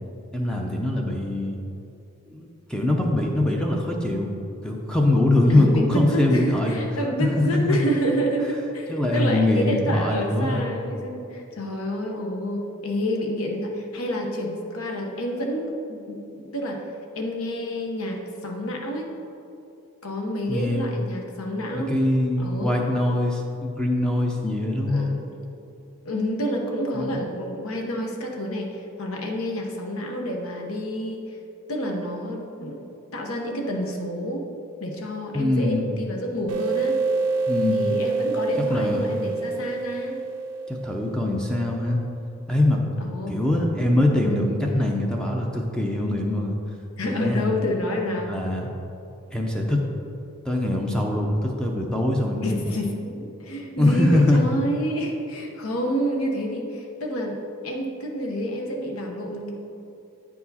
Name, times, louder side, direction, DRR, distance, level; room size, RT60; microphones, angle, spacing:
voice 1, 0.3-1.6 2.3-4.3 4.6-6.8 7.2-7.8 8.9-10.7 20.5-21.0 21.7-25.1 26.9-27.1 35.3-35.8 37.5-37.9 38.7-39.1 40.7-42.0 42.5-42.8 43.3-46.6 47.0-47.5 48.3-48.7 49.3-49.8 50.4-52.8 53.8-54.4, left 1 dB, 5° left, 0 dB, 0.5 m, -23 dB
voice 2, 5.5-16.9 17.1-19.1 20.0-21.9 22.4-22.7 24.9-25.4 26.0-31.4 31.7-32.9 33.1-34.4 34.8-37.0 37.7-40.2 43.0-43.4 47.0-48.3 52.4-59.5, equal, 70° left, 2 dB, 1.0 m, -29 dB
sound 1, 36.5-41.8, right 4 dB, 80° right, 0.6 m, -27 dB
9.2 x 4.7 x 4.1 m, 2.7 s
head